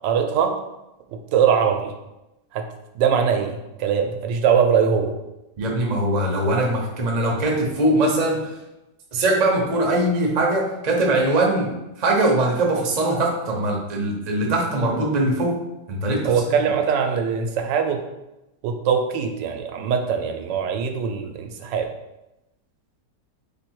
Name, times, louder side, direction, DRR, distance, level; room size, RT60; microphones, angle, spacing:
voice 1, 0.0-0.5 1.3-1.9 2.5-2.6 2.9-5.1 16.2-18.0 18.6-21.9, right 7 dB, 85° right, 5 dB, 1.3 m, -21 dB
voice 2, 5.6-8.4 9.1-11.7 12.0-15.5 15.9-16.3, right 1 dB, 45° right, -1 dB, 0.5 m, -21 dB
3.4 x 3.1 x 4.6 m, 0.95 s
omnidirectional pair, 1.9 m